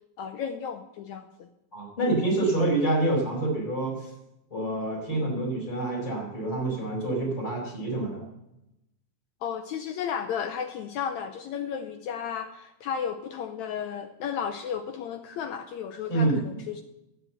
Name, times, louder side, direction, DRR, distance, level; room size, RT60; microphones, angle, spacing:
voice 1, 0.2-1.3 9.4-16.8, left 7 dB, 75° left, 7 dB, 1.9 m, -33 dB
voice 2, 1.7-4.1 4.5-8.3 16.1-16.4, right 2 dB, 40° left, -3 dB, 5.1 m, -27 dB
12.0 x 8.0 x 7.9 m, 0.89 s
omnidirectional pair, 3.6 m